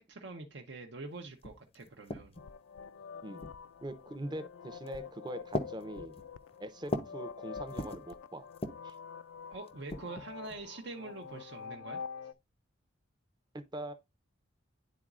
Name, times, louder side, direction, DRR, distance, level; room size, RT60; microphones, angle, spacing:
voice 1, 0.1-2.3 9.5-12.0, right 3 dB, 65° right, 0.7 m, -45 dB
sound 1, 1.1-1.2 1.4-2.6 3.4-3.9 4.7-5.0 5.5-7.2 7.5-8.1 8.5-9.0 9.7-10.6, left 1 dB, 30° left, 0.5 m, -40 dB
sound 2, 2.4-12.3, left 6 dB, 80° left, 0.4 m, -46 dB
voice 2, 3.8-6.2 6.6-8.5 8.8-8.9 13.5-13.9, right 1 dB, 20° right, 0.6 m, -42 dB
10.0 x 3.9 x 2.4 m
head